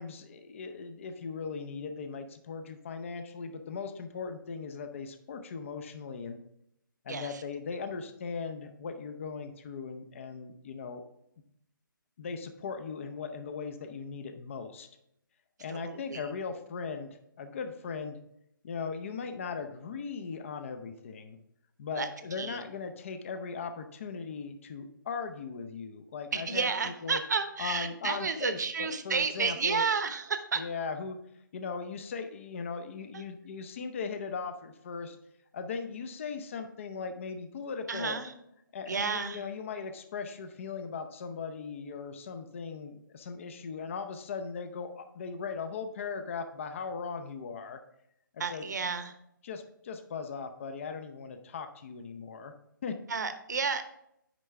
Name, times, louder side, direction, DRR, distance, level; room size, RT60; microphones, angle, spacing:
voice 1, 0.0-6.4 7.0-11.0 12.2-14.9 15.6-18.2 18.6-21.4 21.8-27.2 27.6-29.9 30.5-31.2 31.5-35.2 35.5-38.2 38.7-47.8 48.3-48.9 49.4-52.5 52.8-53.0, left 5 dB, 35° left, 8 dB, 0.7 m, -38 dB
voice 2, 7.1-7.4 15.7-16.3 22.0-22.1 22.4-22.6 26.3-30.6 33.1-33.2 37.9-38.3 38.9-39.4 48.4-49.1 53.1-53.8, right 5 dB, 55° right, 9 dB, 0.9 m, -31 dB
9.1 x 5.4 x 3.5 m, 0.78 s
figure-of-eight pair, 140°, 11 cm